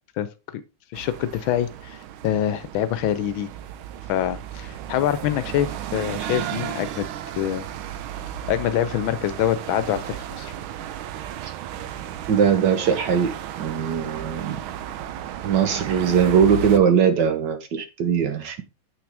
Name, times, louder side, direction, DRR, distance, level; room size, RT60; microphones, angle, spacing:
voice 1, 0.9-3.5 4.1-7.1 7.4-7.7 8.5-10.5, left 11 dB, 75° left, 1.4 m, -25 dB
sound 1, 0.9-16.8, right 10 dB, 80° right, 1.5 m, -34 dB
voice 2, 12.3-14.6 15.4-18.6, right 7 dB, 60° right, 1.5 m, -20 dB
7.8 x 6.0 x 3.4 m
omnidirectional pair, 2.3 m